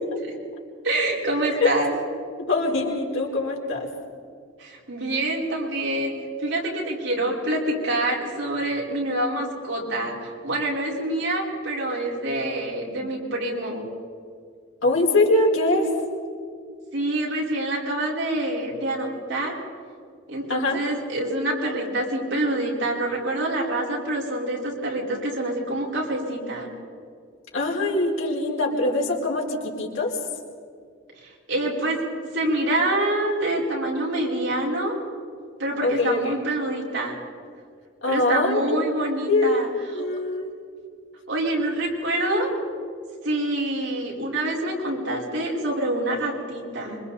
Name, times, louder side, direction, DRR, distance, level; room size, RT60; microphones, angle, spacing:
voice 1, 0.8-1.9 4.6-6.1 6.4-13.9 16.9-19.5 20.3-26.7 31.2-32.0 32.3-34.9 35.6-37.2 38.1-39.7 39.9-40.0 41.3-42.5 43.2-47.0, right 1 dB, 70° right, -3 dB, 4.8 m, -26 dB
voice 2, 2.4-3.9 14.8-15.9 20.5-20.8 27.5-30.2 35.8-36.4 38.0-38.8 39.3-40.5, left 2 dB, 90° left, -1 dB, 4.3 m, -23 dB
26.0 x 24.5 x 4.3 m, 2.2 s
head